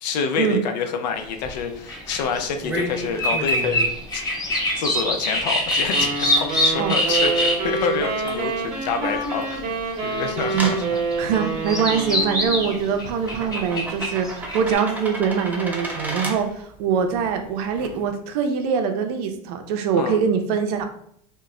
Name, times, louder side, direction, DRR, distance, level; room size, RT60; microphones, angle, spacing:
voice 1, 0.0-4.2 4.7-9.8 10.0-11.0 20.0-20.2, left 5 dB, 85° left, 6 dB, 0.5 m, -27 dB
sound 1, 1.4-18.1, right 1 dB, 10° right, 0.4 m, -36 dB
sound 2, 1.5-1.6 1.9-2.5 2.8-7.8 8.3-9.6 10.1-14.7, left 1 dB, 15° left, 0.8 m, -24 dB
sound 3, 5.9-12.9, right 3 dB, 30° right, 0.8 m, -27 dB
voice 2, 11.2-20.8, right 6 dB, 65° right, 6 dB, 0.5 m, -23 dB
2.2 x 2.0 x 3.6 m, 0.68 s
supercardioid pair, 120°, 21 cm